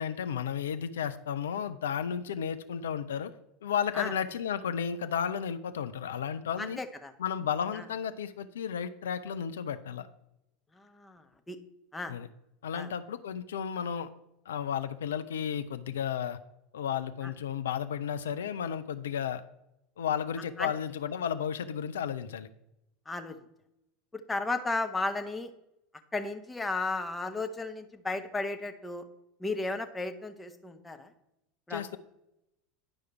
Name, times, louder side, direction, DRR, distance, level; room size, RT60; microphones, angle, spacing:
voice 1, 0.0-3.3 3.6-6.8 7.2-10.1 12.1-12.3 12.6-14.1 14.5-16.4 16.7-19.4 20.0-22.5 31.7-32.0, left 8 dB, 70° left, 10 dB, 0.4 m, -33 dB
voice 2, 6.6-7.1 7.7-7.8 10.8-11.6 11.9-12.1 12.7-12.9 17.2-17.3 20.6-20.7 23.1-23.4 24.3-25.5 26.1-29.0 29.4-31.1 31.7-32.0, left 3 dB, 10° left, 6 dB, 0.9 m, -34 dB
10.5 x 4.8 x 4.4 m, 0.85 s
figure-of-eight pair, 75°, 0 cm